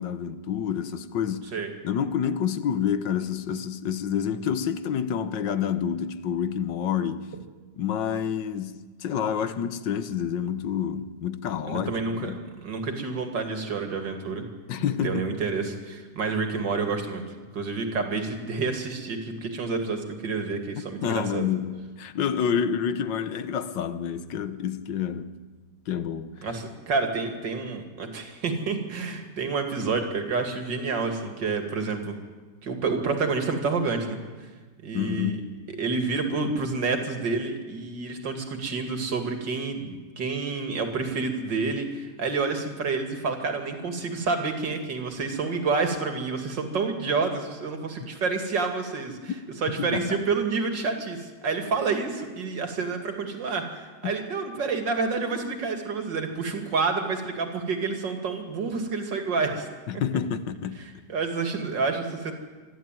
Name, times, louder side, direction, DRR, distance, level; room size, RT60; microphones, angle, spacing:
voice 1, 0.0-1.6 1.8-7.3 7.8-12.4 14.7-15.3 21.0-25.3 25.9-26.4 34.9-35.5 49.8-50.2 54.0-54.1 59.9-60.8, left 8 dB, 85° left, 1.7 m, -28 dB
voice 2, 11.7-12.3 12.6-14.4 14.8-17.2 17.5-21.5 26.4-32.1 32.6-34.2 34.8-35.4 35.7-59.7 60.8-62.3, right 4 dB, 80° right, 2.9 m, -29 dB
25.5 x 12.0 x 9.1 m
omnidirectional pair, 1.9 m